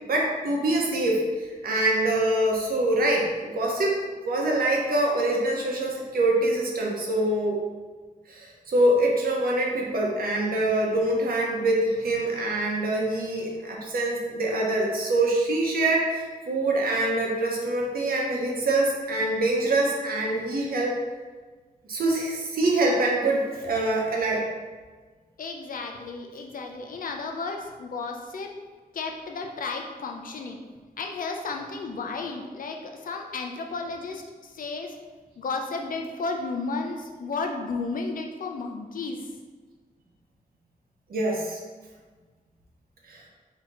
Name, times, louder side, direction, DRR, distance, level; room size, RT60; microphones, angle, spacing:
voice 1, 0.1-1.2 1.6-3.9 4.2-7.6 8.3-20.9 21.9-24.4 41.1-41.6 43.1-43.2, right 2 dB, 80° right, -2 dB, 0.9 m, -24 dB
voice 2, 25.4-28.5 28.9-30.6 31.0-35.0 35.4-39.3, left 3 dB, 65° left, 3 dB, 0.6 m, -33 dB
4.3 x 2.8 x 3.7 m, 1.4 s
wide cardioid pair, 130°, 15 cm